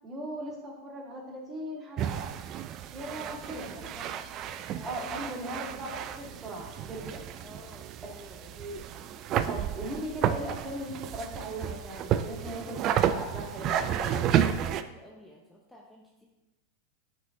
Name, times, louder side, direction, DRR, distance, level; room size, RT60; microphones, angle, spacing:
voice 1, 0.0-2.3 2.9-3.7 3.9-4.1 4.8-7.2 8.5-8.7 9.5-14.2, right 1 dB, 25° right, -1 dB, 1.9 m, -38 dB
sound 1, 2.0-14.8, right 10 dB, 40° right, 0.4 m, -32 dB
voice 2, 3.0-4.0 4.7-5.4 7.4-8.6 14.5-16.3, left 1 dB, 5° left, -2 dB, 0.9 m, -51 dB
8.8 x 5.4 x 2.8 m, 1.1 s
hypercardioid pair, 90°, 0 cm